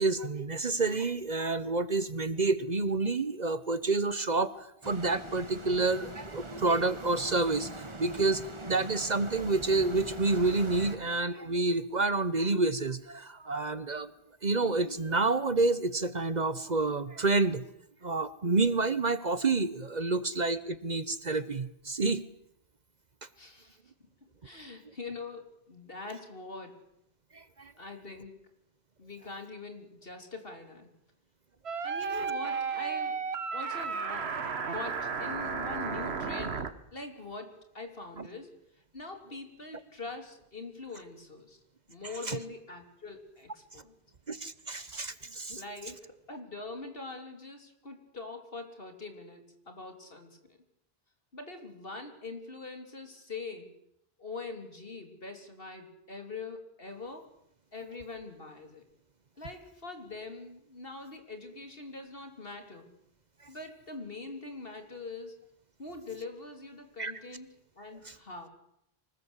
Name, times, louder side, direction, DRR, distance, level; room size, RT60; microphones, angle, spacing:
voice 1, 0.0-14.1 14.4-17.6 18.0-22.2 27.3-27.7 38.2-38.3 42.3-42.4 44.3-45.6 67.0-67.1 68.1-68.2, right 3 dB, 45° right, 15 dB, 1.1 m, -29 dB
sound 1, 4.8-11.0, right 2 dB, 30° right, 1.7 m, -43 dB
voice 2, 23.4-23.8 24.4-26.8 27.8-28.4 29.0-30.9 31.8-33.3 33.5-38.6 38.9-41.6 41.9-43.9 45.5-50.6 51.3-53.8 54.2-57.3 57.7-58.8 59.4-62.9 63.5-65.4 65.8-67.5 67.8-68.5, left 3 dB, 65° left, 6 dB, 3.7 m, -43 dB
sound 2, 31.7-36.7, right 5 dB, 80° right, 1.6 m, -33 dB
24.5 x 20.0 x 8.2 m, 0.77 s
omnidirectional pair, 1.1 m